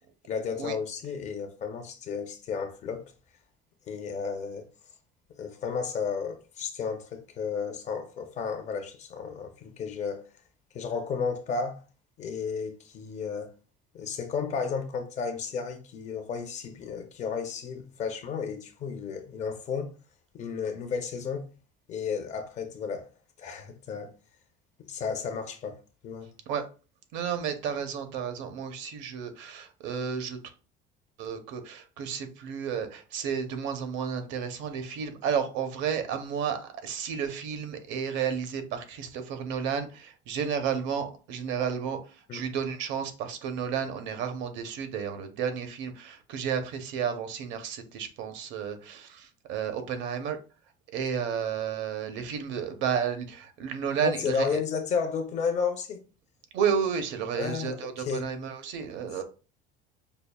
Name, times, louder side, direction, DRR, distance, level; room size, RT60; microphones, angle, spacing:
voice 1, 0.3-3.0 3.9-4.7 5.4-10.2 10.7-11.8 12.2-13.5 13.9-19.9 20.3-21.5 21.9-23.0 23.4-24.1 24.9-25.8 26.0-26.3 42.3-42.4 54.0-56.0 57.3-58.2, left 6 dB, 35° left, 0.5 m, -33 dB
voice 2, 27.1-30.4 31.2-50.4 50.9-54.6 56.5-59.2, right 7 dB, 65° right, 0.7 m, -32 dB
5.3 x 2.3 x 2.2 m
cardioid pair, 165°, 21 cm